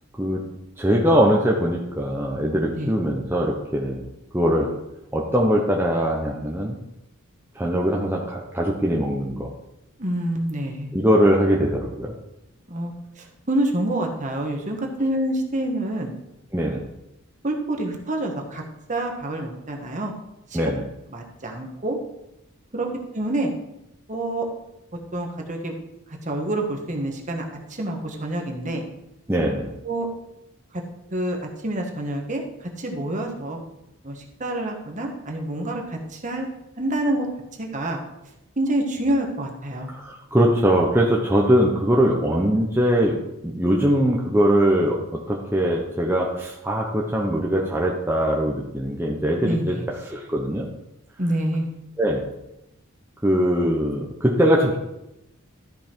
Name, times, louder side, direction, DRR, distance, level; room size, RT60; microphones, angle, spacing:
voice 1, 0.8-4.0 4.3-4.7 5.1-6.8 7.6-9.5 10.9-12.1 16.5-16.8 20.5-20.8 29.3-29.7 39.9-45.0 45.3-49.7 50.1-50.7 52.0-52.2 53.2-54.8, equal, 10° right, -3 dB, 0.8 m, -21 dB
voice 2, 10.0-10.9 12.7-16.1 17.4-18.6 18.9-20.1 20.5-20.6 21.1-22.0 22.7-23.5 24.1-24.5 25.1-25.7 26.1-28.8 29.8-30.1 30.7-30.8 31.1-31.4 31.6-32.4 32.8-33.6 34.0-36.5 36.8-37.3 37.6-38.0 38.6-39.9 49.4-49.8 51.2-51.7, right 1 dB, 35° right, 2 dB, 1.4 m, -27 dB
13.0 x 5.5 x 4.5 m, 0.88 s
head